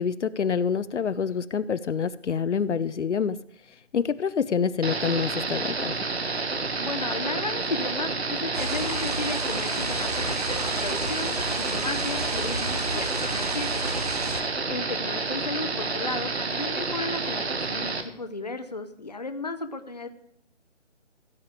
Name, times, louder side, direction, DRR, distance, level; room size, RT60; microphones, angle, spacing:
voice 1, 0.0-3.4 3.9-6.0, left 6 dB, 75° left, 15 dB, 0.6 m, -26 dB
sound 1, 4.8-18.0, right 4 dB, 60° right, 1.5 m, -29 dB
voice 2, 6.8-10.4 10.8-13.8 14.7-20.1, left 3 dB, 35° left, 8 dB, 0.7 m, -34 dB
sound 2, 8.5-14.4, right 2 dB, 35° right, 0.8 m, -32 dB
15.5 x 5.3 x 7.5 m, 0.69 s
hypercardioid pair, 180°, 36 cm